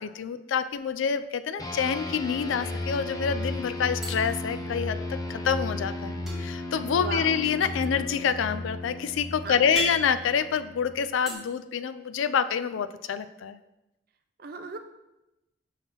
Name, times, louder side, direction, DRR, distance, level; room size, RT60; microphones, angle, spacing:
voice 1, 0.0-13.6, left 7 dB, 75° left, 12 dB, 0.3 m, -27 dB
sound 1, 0.7-1.6 1.9-2.1 2.3-3.1 4.0-5.3 6.3-11.4, right 2 dB, ahead, 1.2 m, -40 dB
sound 2, 1.6-11.3, left 2 dB, 20° left, 0.5 m, -35 dB
voice 2, 7.0-7.5 9.4-9.9 14.4-14.8, right 4 dB, 50° right, 6 dB, 0.5 m, -37 dB
5.5 x 3.6 x 5.6 m, 0.95 s
head